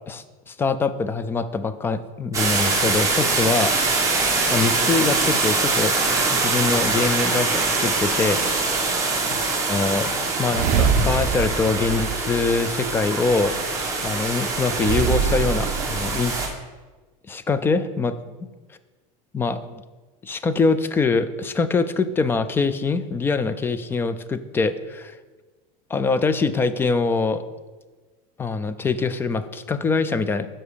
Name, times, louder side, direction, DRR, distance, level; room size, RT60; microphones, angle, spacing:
voice 1, 0.1-3.7 4.5-5.9 6.3-8.4 9.7-10.1 10.4-13.7 14.0-16.3 17.3-18.1 19.3-19.6 20.2-25.2 25.9-27.4 28.4-30.5, left 4 dB, 10° left, 12 dB, 0.3 m, -23 dB
sound 1, 2.3-16.5, right 3 dB, 15° right, 1.4 m, -23 dB
sound 2, 8.2-8.3 10.5-12.9 14.8-16.4, right 6 dB, 45° right, 0.6 m, -25 dB
9.5 x 5.6 x 5.1 m, 1.3 s
supercardioid pair, 155°, 19 cm